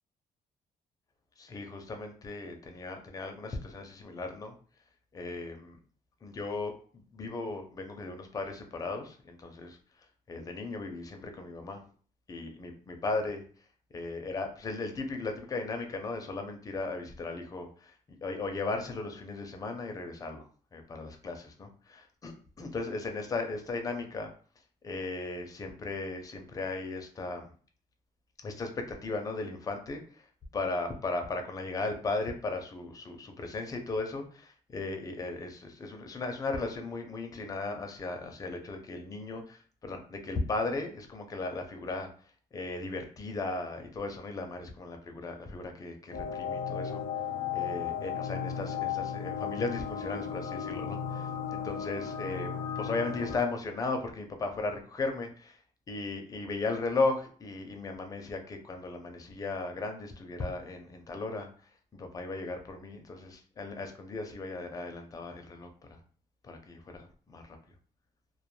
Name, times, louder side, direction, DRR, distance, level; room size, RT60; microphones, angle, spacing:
voice 1, 1.4-4.5 5.1-5.8 6.2-9.8 10.3-11.8 12.3-13.4 13.9-24.3 24.8-27.5 28.4-30.2 30.5-42.1 42.5-47.0 47.5-51.2 51.5-52.5 52.8-55.6 55.9-66.0 66.4-67.6, left 3 dB, 25° left, 4 dB, 0.4 m, -36 dB
sound 1, 46.1-53.4, left 8 dB, 85° left, 0.5 m, -35 dB
2.2 x 2.2 x 3.0 m, 0.43 s
cardioid pair, 160°, 14 cm